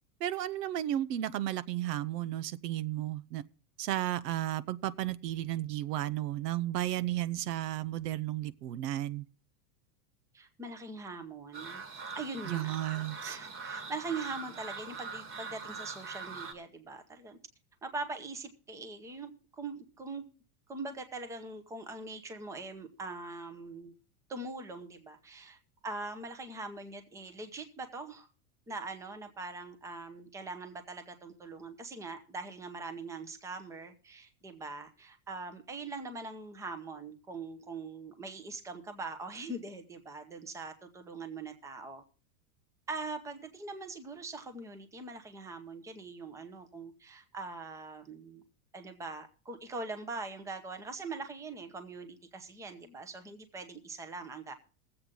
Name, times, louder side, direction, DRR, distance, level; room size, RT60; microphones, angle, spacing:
voice 1, 0.2-3.4 3.8-9.3 12.4-13.4, right 13 dB, 90° right, 0.9 m, -33 dB
voice 2, 10.3-12.8 13.1-17.4 17.8-20.2 20.7-23.9 24.3-25.6 25.8-28.3 28.7-42.0 42.9-48.4 48.7-54.5, right 3 dB, 5° right, 0.7 m, -42 dB
sound 1, 11.5-16.5, right 4 dB, 25° right, 1.5 m, -42 dB
21.0 x 7.9 x 3.7 m
supercardioid pair, 160°, 47 cm